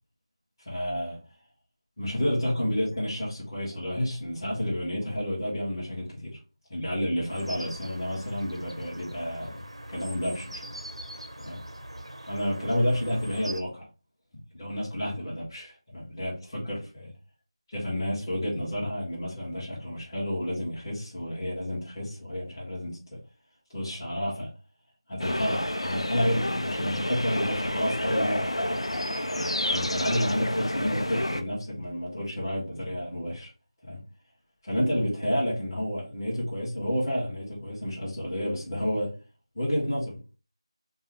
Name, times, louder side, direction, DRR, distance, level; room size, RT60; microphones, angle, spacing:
voice 1, 0.7-1.2 2.0-6.4 6.7-9.6 9.9-10.7 11.4-11.6 12.3-13.8 14.5-17.1 17.7-23.2 23.7-24.5 25.1-28.9 29.4-33.5 33.8-34.0 34.6-39.1 39.6-40.2, equal, 20° left, 1.7 m, -30 dB
sound 1, 7.3-13.6, right 1 dB, 80° right, 0.8 m, -42 dB
sound 2, 25.2-31.4, left 1 dB, 75° left, 0.6 m, -29 dB
5.4 x 2.3 x 3.2 m
figure-of-eight pair, 165°, 3 cm